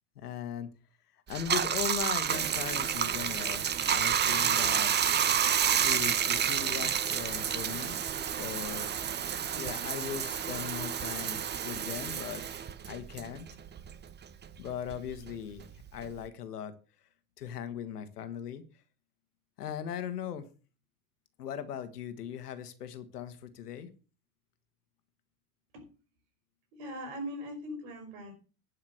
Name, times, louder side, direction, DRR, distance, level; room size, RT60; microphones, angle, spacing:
voice 1, 0.2-0.7 1.3-5.0 5.8-8.0 8.4-8.9 9.5-12.4 12.9-13.5 14.6-16.7 17.4-18.6 19.6-20.5 21.4-23.9, left 9 dB, 85° left, 10 dB, 1.8 m, -39 dB
Bathtub (filling or washing), 1.3-14.1 14.4-16.3, right 8 dB, 25° right, 0.9 m, -30 dB
voice 2, 26.7-28.3, equal, 60° right, 3 dB, 4.5 m, -40 dB
11.5 x 5.7 x 7.8 m, 0.36 s
hypercardioid pair, 95°, 45 cm